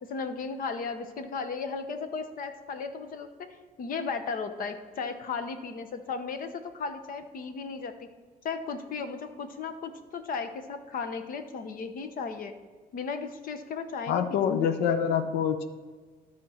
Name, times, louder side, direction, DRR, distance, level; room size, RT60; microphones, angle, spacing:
voice 1, 0.0-8.1 8.4-12.5 12.9-14.4 14.7-14.9, left 5 dB, 55° left, 8 dB, 0.9 m, -35 dB
voice 2, 14.1-15.7, left 7 dB, 85° left, 9 dB, 0.7 m, -26 dB
13.0 x 4.4 x 4.3 m, 1.5 s
cardioid pair, 110°, 17 cm